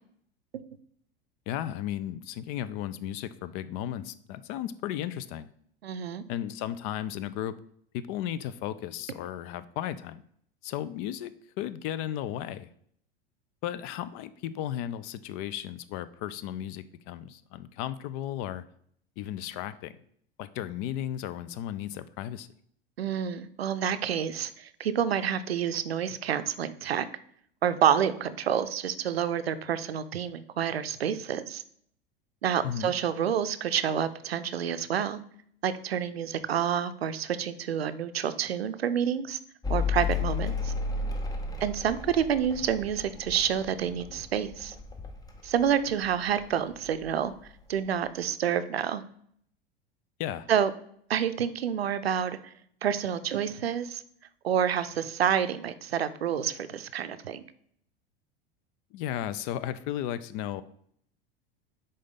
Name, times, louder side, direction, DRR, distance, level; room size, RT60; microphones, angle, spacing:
voice 1, 1.5-5.5 6.3-7.6 7.9-10.2 10.6-11.3 11.6-12.7 13.6-18.6 19.2-19.9 20.4-22.5 32.6-32.9 50.2-50.5 58.9-60.6, left 11 dB, 45° left, 15 dB, 0.5 m, -35 dB
voice 2, 5.8-6.2 23.0-27.1 27.6-31.6 32.4-35.2 35.6-39.4 39.7-40.7 41.6-44.8 45.4-47.3 47.7-49.0 50.5-50.7 51.1-52.5 52.8-54.0 54.4-57.4, right 9 dB, 85° right, 12 dB, 0.5 m, -28 dB
Mechanical fan, 39.6-46.5 46.8-47.6, left 5 dB, 10° left, 0.7 m, -33 dB
6.2 x 4.1 x 4.0 m, 0.65 s
hypercardioid pair, 85°, 30 cm